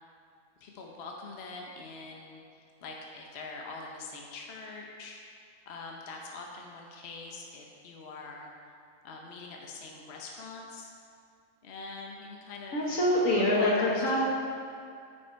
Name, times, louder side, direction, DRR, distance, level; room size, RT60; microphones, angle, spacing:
voice 1, 0.6-2.4 2.8-5.2 5.7-8.5 9.0-10.9 11.6-12.8 13.2-14.2, left 3 dB, 55° left, 0 dB, 1.0 m, -43 dB
voice 2, 12.7-14.2, left 1 dB, 85° left, -4 dB, 1.8 m, -25 dB
9.3 x 5.3 x 4.5 m, 2.3 s
omnidirectional pair, 1.4 m